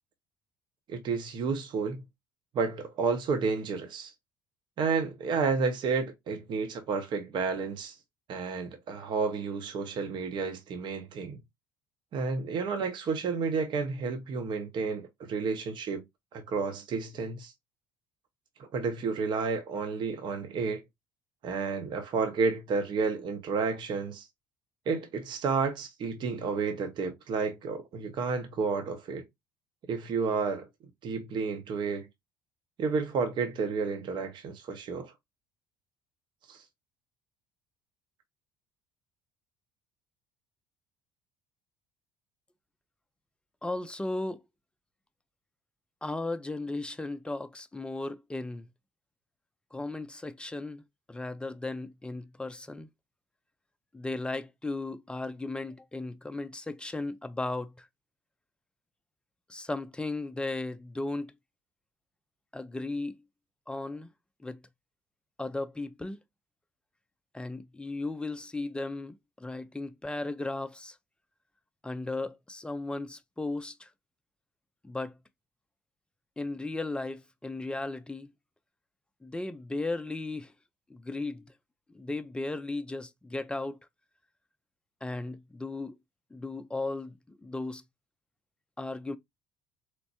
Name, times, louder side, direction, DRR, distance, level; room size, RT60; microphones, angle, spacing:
voice 1, 0.9-2.0 2.5-4.1 4.8-8.0 8.3-11.4 12.1-16.0 16.3-17.5 18.6-20.8 21.4-24.2 24.9-29.2 29.9-30.7 31.0-32.1 32.8-35.1 36.5-36.6, right 5 dB, 45° right, 0.8 m, -31 dB
voice 2, 43.6-44.4 46.0-48.7 49.7-50.8 51.1-52.9 53.9-57.9 59.5-61.3 62.5-63.1 63.7-64.1 64.4-64.6 65.4-66.2 67.3-71.0 71.8-73.9 74.8-75.2 76.4-78.3 79.2-80.5 80.9-81.5 81.9-83.8 85.0-86.0 86.3-87.8 88.8-89.2, left 2 dB, 10° left, 0.4 m, -36 dB
4.3 x 2.1 x 2.7 m
figure-of-eight pair, 55°, 11 cm